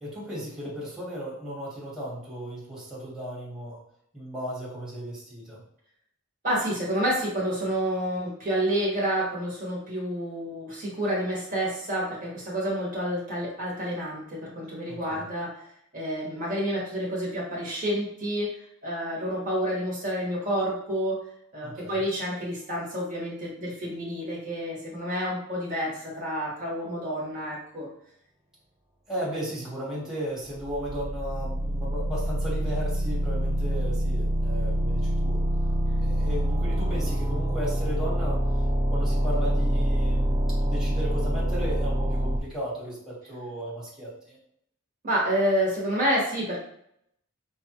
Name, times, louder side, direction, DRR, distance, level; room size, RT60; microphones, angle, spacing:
voice 1, 0.0-3.8 4.1-5.6 14.9-15.2 21.6-22.0 29.1-35.4 36.0-38.4 38.9-44.4, equal, 5° right, -8 dB, 1.3 m, -35 dB
voice 2, 6.4-15.6 15.9-18.5 18.8-21.2 21.5-27.9 45.0-46.6, equal, 35° right, -5 dB, 1.2 m, -29 dB
sound 1, 30.5-42.4, right 1 dB, 20° right, 0.3 m, -26 dB
5.2 x 2.3 x 2.9 m, 0.72 s
head